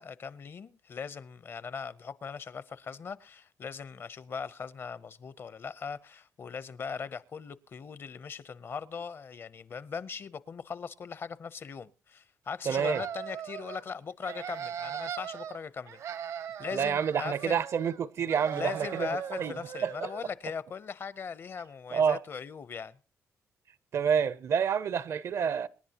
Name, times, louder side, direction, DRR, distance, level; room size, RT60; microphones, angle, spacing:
voice 1, 0.0-16.0 16.6-17.6 18.5-23.0, left 6 dB, 45° left, 0.6 m, -39 dB
voice 2, 12.7-13.0 16.7-19.1 19.4-19.5 19.8-20.1 21.9-22.2 23.9-25.7, right 7 dB, 60° right, 0.6 m, -28 dB
sound 1, 12.7-13.8 14.2-15.6 15.9-18.0 18.3-20.3, right 8 dB, 80° right, 1.2 m, -39 dB
26.5 x 10.5 x 2.8 m
cardioid pair, 120°, 6 cm